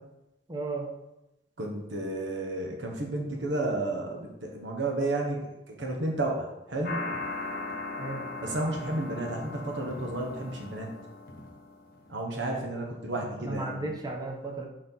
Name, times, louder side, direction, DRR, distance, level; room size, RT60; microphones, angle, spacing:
voice 1, 0.5-0.9 8.0-8.3 13.4-14.7, right 2 dB, 20° right, 2 dB, 0.9 m, -34 dB
voice 2, 1.6-5.4 5.7-7.0 8.4-10.9 12.1-14.0, right 2 dB, 80° right, 1 dB, 1.1 m, -32 dB
sound 1, 6.8-12.1, left 3 dB, 55° left, 1.0 m, -38 dB
6.2 x 4.4 x 4.0 m, 0.93 s
head